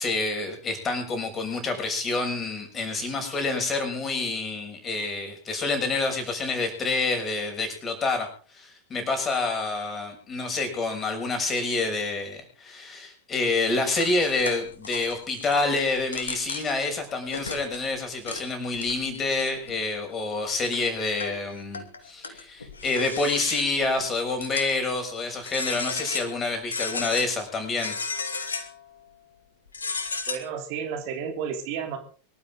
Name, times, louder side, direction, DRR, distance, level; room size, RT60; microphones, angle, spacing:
voice 1, 0.0-8.3 8.5-28.0, left 3 dB, 20° left, 5 dB, 6.6 m, -28 dB
sound 1, 13.8-15.6 16.0-16.9 17.3-17.9 18.3-18.4 18.7-19.7 20.3-20.4 20.7-21.4 21.7-23.8 24.4-25.0 25.4-26.4 26.7-27.3 27.8-28.8 29.7-30.4, left 4 dB, 70° left, 2.5 m, -33 dB
voice 2, 30.3-32.0, right 7 dB, 45° right, 5 dB, 3.0 m, -32 dB
24.5 x 13.0 x 3.9 m, 0.41 s
figure-of-eight pair, 90°, 0 cm